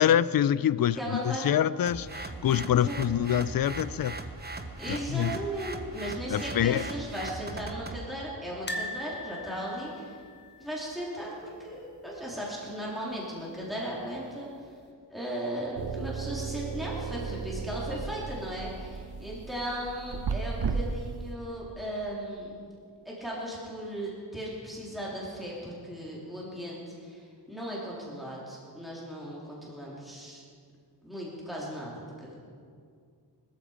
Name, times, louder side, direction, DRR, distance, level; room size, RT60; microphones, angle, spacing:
voice 1, 0.0-4.2 4.9-5.3 6.3-6.8, left 10 dB, 55° left, 0.5 m, -25 dB
voice 2, 0.9-1.5 2.7-3.0 4.8-10.2 10.6-14.7 15.1-22.6 23.0-30.4 31.0-32.4, equal, ahead, 3.4 m, -37 dB
sound 1, 1.9-8.1, right 2 dB, 25° right, 1.0 m, -39 dB
sound 2, 8.7-11.7 12.0-12.2 12.4-12.5 13.8-14.3 14.8-14.9, left 1 dB, 25° left, 1.2 m, -40 dB
sound 3, 15.8-21.3, right 5 dB, 60° right, 0.9 m, -35 dB
20.5 x 13.5 x 5.1 m
wide cardioid pair, 135°, 42 cm